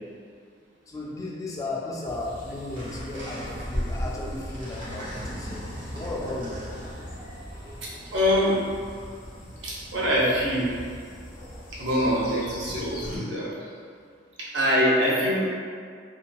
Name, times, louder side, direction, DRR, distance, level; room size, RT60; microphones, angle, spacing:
voice 1, 0.9-6.6, left 2 dB, 20° left, -3 dB, 0.3 m, -35 dB
sound 1, 2.0-13.2, equal, 45° left, 0.7 m, -42 dB
sound 2, 2.7-8.1, equal, 50° right, 1.3 m, -36 dB
voice 2, 7.8-8.6 9.6-10.7 11.7-13.7 14.4-15.5, equal, 75° right, -6 dB, 0.7 m, -24 dB
2.9 x 2.1 x 2.3 m, 2.1 s
head